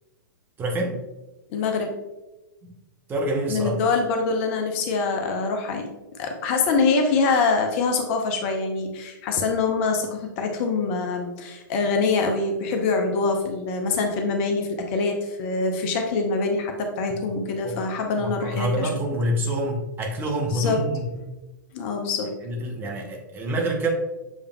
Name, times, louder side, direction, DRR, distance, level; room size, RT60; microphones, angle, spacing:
voice 1, 0.6-1.0 3.1-3.7 17.6-17.8 18.2-21.0 22.4-23.9, right 1 dB, 20° right, 1 dB, 0.8 m, -26 dB
voice 2, 1.5-1.9 3.5-5.9 6.2-18.9 20.5-20.8 21.7-22.3, left 4 dB, 35° left, 3 dB, 0.7 m, -24 dB
7.1 x 3.4 x 2.2 m, 1.0 s
figure-of-eight pair, 105°, 11 cm